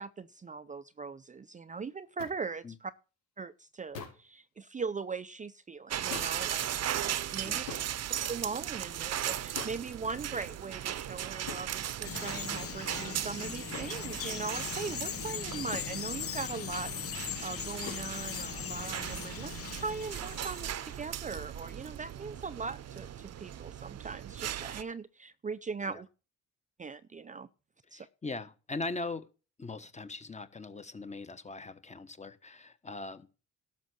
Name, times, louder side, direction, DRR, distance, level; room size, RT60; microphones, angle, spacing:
voice 1, 0.0-2.9 3.4-7.6 8.3-26.1 26.8-27.5 27.9-28.1, right 4 dB, 25° right, 0.5 m, -40 dB
sound 1, 2.2-2.4 3.9-4.3 6.1-6.4 7.7-7.9 9.5-9.8 11.5-11.7 13.7-14.0 15.7-16.0 17.8-18.1, left 6 dB, 85° left, 4.5 m, -43 dB
sound 2, 5.9-24.8, right 11 dB, 55° right, 0.8 m, -38 dB
Bird vocalization bird call bird song, 12.0-20.9, left 9 dB, 50° left, 0.9 m, -40 dB
voice 2, 27.9-29.3 29.6-33.3, left 3 dB, 25° left, 1.2 m, -40 dB
12.0 x 6.7 x 6.3 m
cardioid pair, 90°, 30 cm